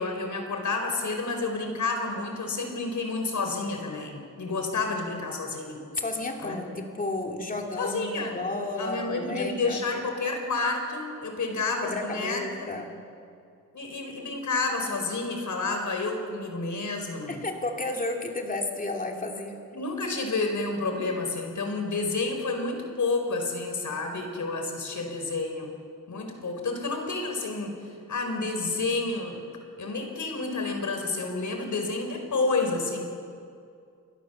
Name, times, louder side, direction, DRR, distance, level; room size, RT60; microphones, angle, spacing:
voice 1, 0.0-5.8 6.4-6.6 7.8-8.5 8.8-12.7 13.7-17.4 19.7-25.7 26.1-29.4 29.8-33.1, left 3 dB, 65° left, 4 dB, 4.7 m, -30 dB
voice 2, 5.9-9.8 11.8-12.9 17.3-19.6, left 2 dB, 25° left, 2 dB, 2.9 m, -32 dB
29.0 x 22.5 x 7.1 m, 2.4 s
wide cardioid pair, 170°, 32 cm